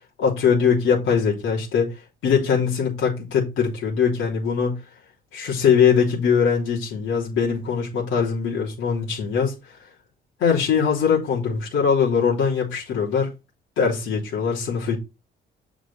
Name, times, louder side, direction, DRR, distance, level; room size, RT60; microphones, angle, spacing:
voice 1, 0.2-1.9 2.2-4.8 5.3-9.5 10.4-13.3 13.8-15.0, left 6 dB, 85° left, 3.3 m, -21 dB
6.4 x 5.2 x 4.2 m
cardioid pair, 90°, 20 cm